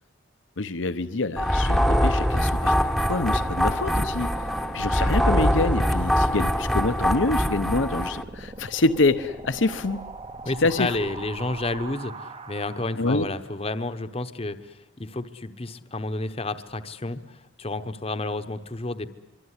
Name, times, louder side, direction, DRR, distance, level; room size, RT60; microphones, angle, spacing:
voice 1, 0.6-4.5 4.7-10.0 10.6-11.0 13.0-13.3, left 3 dB, 70° left, 11 dB, 0.9 m, -26 dB
sound 1, 1.4-8.2, equal, ahead, 1.0 m, -23 dB
sound 2, 2.3-13.3, right 2 dB, 30° right, 1.0 m, -41 dB
voice 2, 10.4-19.1, left 2 dB, 30° left, 9 dB, 1.0 m, -31 dB
25.0 x 24.5 x 9.8 m, 0.98 s
head